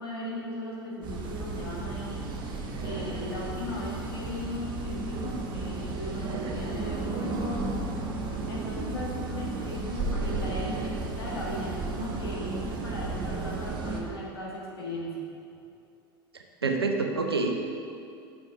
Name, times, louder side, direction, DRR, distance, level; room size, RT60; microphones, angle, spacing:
voice 1, 0.0-2.2 2.8-7.7 8.3-15.3, left 1 dB, 75° left, -5 dB, 1.7 m, -37 dB
sound 1, 1.0-14.0, right 3 dB, 40° right, 0.9 m, -33 dB
voice 2, 16.3-17.6, right 3 dB, 85° right, 3 dB, 0.7 m, -27 dB
6.1 x 5.3 x 4.7 m, 2.5 s
figure-of-eight pair, 80°, 13 cm